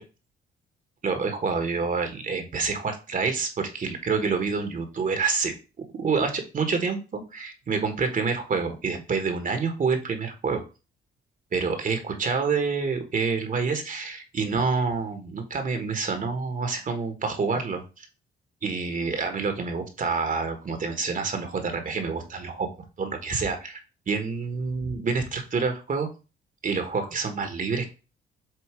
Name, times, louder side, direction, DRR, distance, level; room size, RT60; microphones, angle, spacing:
voice 1, 1.0-5.5 6.0-10.6 11.5-18.1 18.6-22.7 23.0-23.8 24.1-26.1 26.6-27.9, right 4 dB, 45° right, 6 dB, 1.4 m, -27 dB
7.8 x 2.7 x 5.0 m, 0.31 s
cardioid pair, 90°, 20 cm